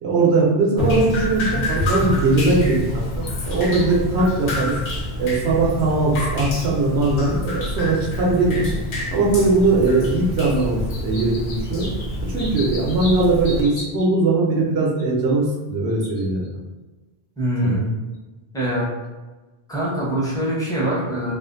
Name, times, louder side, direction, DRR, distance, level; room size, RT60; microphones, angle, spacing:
voice 1, 0.0-4.7 5.2-8.7 9.1-11.9 12.2-16.5 17.6-17.7, right 2 dB, 85° right, -3 dB, 0.9 m, -20 dB
Drip, 0.8-13.6, left 1 dB, 80° left, 0.9 m, -27 dB
sound 1, 1.2-1.3 2.0-2.1 3.0-3.3 3.8-3.9 4.5-4.6 5.4-5.5 6.1-6.2 7.0-7.1 7.8-7.9 8.5-8.9 9.6-9.9 10.6-14.1 15.0-15.3 15.9-16.5 18.1-18.2, left 2 dB, 55° left, 0.6 m, -38 dB
voice 2, 17.4-17.9 18.5-18.8 19.7-21.3, right 1 dB, 5° left, -7 dB, 0.6 m, -23 dB
2.5 x 2.4 x 2.5 m, 1.2 s
omnidirectional pair, 1.0 m